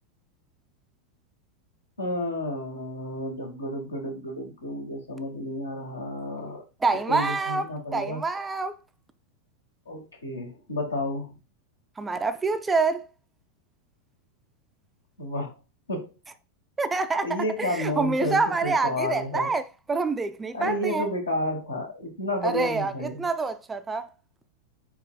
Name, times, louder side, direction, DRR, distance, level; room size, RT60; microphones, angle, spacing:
voice 1, 2.0-6.6 7.1-8.2 9.9-11.3 15.2-15.5 15.9-16.1 17.2-19.5 20.5-23.3, left 1 dB, 75° left, 1.3 m, -31 dB
voice 2, 6.8-8.8 12.0-13.1 16.8-21.1 22.4-24.1, right 3 dB, 15° right, 0.3 m, -27 dB
4.6 x 4.5 x 2.3 m
figure-of-eight pair, 90°, 0 cm